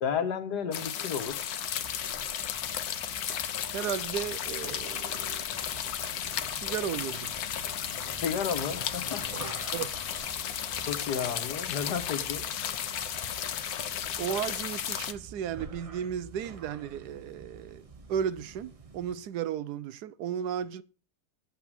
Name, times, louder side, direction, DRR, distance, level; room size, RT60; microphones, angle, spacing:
voice 1, 0.0-1.4 8.2-9.3 10.9-12.4, left 7 dB, 85° left, 1.8 m, -32 dB
sound 1, 0.7-15.1, left 9 dB, 70° left, 1.3 m, -34 dB
sound 2, 1.6-19.3, right 4 dB, 35° right, 0.5 m, -48 dB
voice 2, 3.7-5.4 6.5-7.3 9.7-9.9 14.2-20.8, right 9 dB, 80° right, 1.2 m, -34 dB
sound 3, 4.5-10.8, left 2 dB, 10° right, 3.4 m, -59 dB
8.6 x 7.3 x 7.4 m
omnidirectional pair, 1.7 m